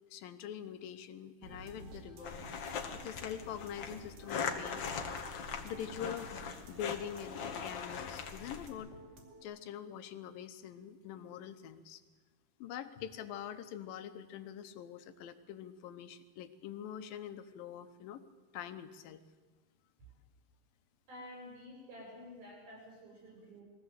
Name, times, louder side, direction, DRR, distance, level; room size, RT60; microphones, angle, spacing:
voice 1, 0.1-2.4 2.9-4.9 5.6-8.9 9.4-12.0 12.6-18.2 18.5-19.2, left 9 dB, 80° left, 10 dB, 2.7 m, -44 dB
sound 1, 1.4-9.4, right 3 dB, 60° right, 4.0 m, -53 dB
sound 2, 2.2-8.7, left 6 dB, 55° left, 1.3 m, -41 dB
voice 2, 21.1-23.6, left 1 dB, 85° right, -2 dB, 9.6 m, -50 dB
22.0 x 15.5 x 8.1 m, 1.3 s
omnidirectional pair, 4.1 m